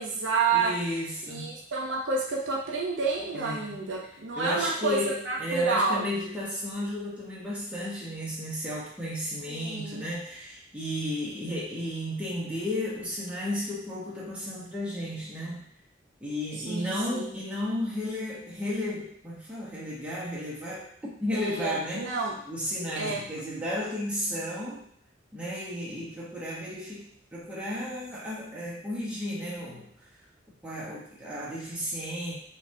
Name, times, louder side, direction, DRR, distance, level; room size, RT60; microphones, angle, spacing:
voice 1, 0.0-0.7 1.3-6.0 9.5-10.0 16.7-17.3 21.3-22.4 23.0-23.2, right 4 dB, 65° right, -2 dB, 0.5 m, -29 dB
voice 2, 0.5-1.6 3.3-3.8 4.4-15.7 16.2-20.9 21.2-22.2 22.5-24.8 25.3-29.9 30.6-32.4, left 1 dB, 5° right, -7 dB, 0.7 m, -33 dB
3.2 x 2.3 x 2.5 m, 0.64 s
head